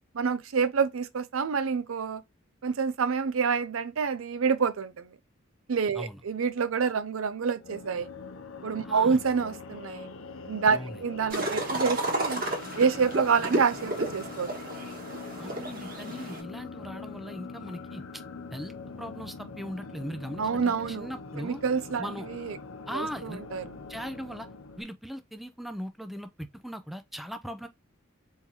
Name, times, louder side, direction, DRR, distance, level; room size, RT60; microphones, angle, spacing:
voice 1, 0.1-2.2 2.6-5.1 5.7-8.1 8.6-10.1 10.5-12.4 12.8-14.5 20.4-21.1 21.4-22.6 22.9-23.6, right 5 dB, 85° right, 0.5 m, -27 dB
sound 1, 7.5-24.8, left 4 dB, 85° left, 0.7 m, -43 dB
voice 2, 8.8-9.2 10.7-11.0 15.4-18.2 18.5-21.6 22.0-22.3 22.9-23.4 23.9-24.5 24.8-27.7, equal, ahead, 0.4 m, -39 dB
sound 2, 11.3-16.4, right 1 dB, 45° right, 1.4 m, -32 dB
4.3 x 3.7 x 2.8 m
head